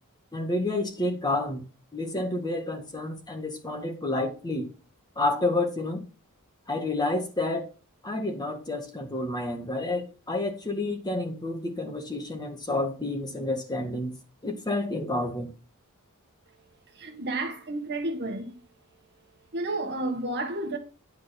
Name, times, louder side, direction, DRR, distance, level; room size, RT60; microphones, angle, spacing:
voice 1, 0.3-1.6 1.9-4.7 5.2-6.0 6.7-7.7 8.0-14.1 14.4-15.5, left 2 dB, 20° left, 1.8 m, -29 dB
voice 2, 17.0-18.6 19.5-20.8, right 2 dB, 50° right, 1.7 m, -31 dB
10.5 x 4.6 x 5.9 m
head